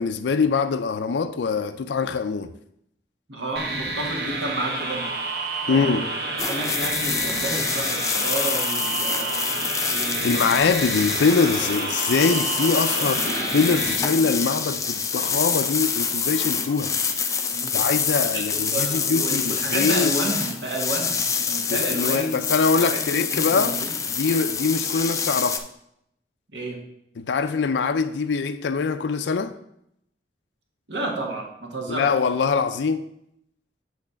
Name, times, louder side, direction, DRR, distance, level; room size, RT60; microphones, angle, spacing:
voice 1, 0.0-2.5 5.7-6.1 10.2-13.2 13.5-16.9 17.7-20.1 21.7-23.8 24.2-25.6 27.2-29.5 31.9-33.0, left 4 dB, 85° left, 0.4 m, -23 dB
voice 2, 3.3-5.2 5.6-6.1 6.4-10.5 13.0-13.1 17.5-17.8 18.3-22.4 22.7-23.0 23.3-24.0 26.5-26.8 30.9-32.1, right 2 dB, 90° right, 1.6 m, -31 dB
sound 1, 3.6-14.0, right 3 dB, 60° right, 1.0 m, -29 dB
sound 2, 6.4-25.6, left 6 dB, 20° left, 0.5 m, -26 dB
8.3 x 3.2 x 6.3 m
head